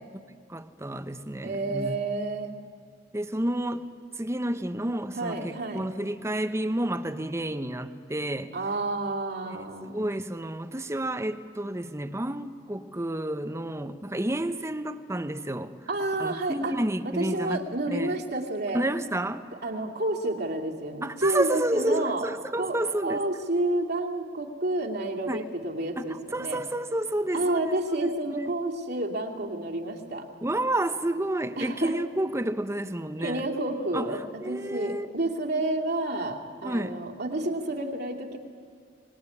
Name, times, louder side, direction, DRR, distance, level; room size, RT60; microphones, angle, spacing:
voice 1, 0.5-2.0 3.1-3.9 4.2-8.5 9.4-15.7 16.2-18.1 18.7-19.4 21.0-23.2 25.3-25.4 26.0-28.5 30.4-33.5 33.9-35.1 36.6-36.9, right 1 dB, 15° right, 11 dB, 0.9 m, -30 dB
voice 2, 1.4-2.6 5.2-5.9 8.5-10.0 15.9-16.8 17.0-18.8 19.6-22.3 22.6-22.8 23.0-26.6 27.3-30.3 31.6-32.0 33.2-38.4, right 2 dB, 60° right, 0 dB, 2.6 m, -30 dB
25.0 x 20.0 x 9.8 m, 2.2 s
head